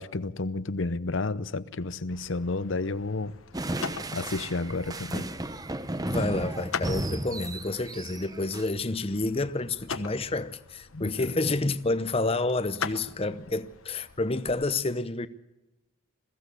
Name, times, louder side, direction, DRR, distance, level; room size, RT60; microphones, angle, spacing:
voice 1, 0.0-3.3 4.1-5.2 10.9-11.3, left 3 dB, 65° left, 0.7 m, -31 dB
sound 1, 2.1-14.6, left 5 dB, 80° left, 1.2 m, -42 dB
sound 2, 3.5-8.7, right 1 dB, 15° right, 0.7 m, -34 dB
voice 2, 6.1-15.3, left 2 dB, 25° left, 0.7 m, -29 dB
21.5 x 15.0 x 8.3 m
head